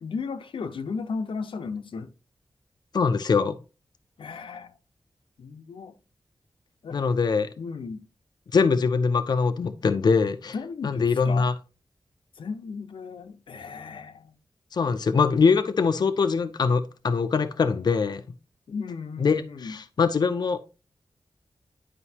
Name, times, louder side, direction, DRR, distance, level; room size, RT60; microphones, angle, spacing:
voice 1, 0.0-2.1 4.2-4.8 5.4-5.9 6.8-7.0 7.6-8.0 10.5-11.5 12.4-14.3 18.7-19.8, left 5 dB, 85° left, 0.7 m, -35 dB
voice 2, 2.9-3.6 6.9-7.5 8.5-10.5 10.8-11.5 14.7-18.2 19.2-20.6, left 5 dB, 55° left, 0.5 m, -23 dB
9.9 x 5.0 x 2.8 m
wide cardioid pair, 115°, 8 cm